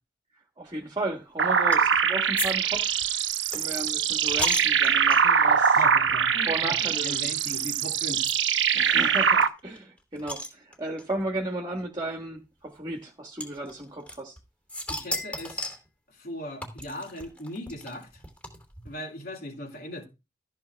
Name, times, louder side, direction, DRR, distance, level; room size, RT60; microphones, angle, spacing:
voice 1, 0.6-3.2 3.5-5.8 6.5-7.2 8.7-14.4, right 1 dB, 25° right, 1.6 m, -34 dB
sound 1, 1.4-9.5, right 7 dB, 80° right, 1.0 m, -23 dB
sound 2, 1.7-2.0 2.4-2.5 2.7-5.4 6.1-6.2 6.5-6.6 7.6-7.7 8.2-8.3 8.6-8.7 8.9-9.0 9.4-11.1 12.0-12.1 13.4-14.4 14.7-15.9 16.6-18.9, equal, 5° left, 2.8 m, -35 dB
voice 2, 5.7-8.3 14.9-15.7 16.1-18.2 18.8-20.0, left 1 dB, 50° left, 3.0 m, -38 dB
13.5 x 7.3 x 3.5 m
head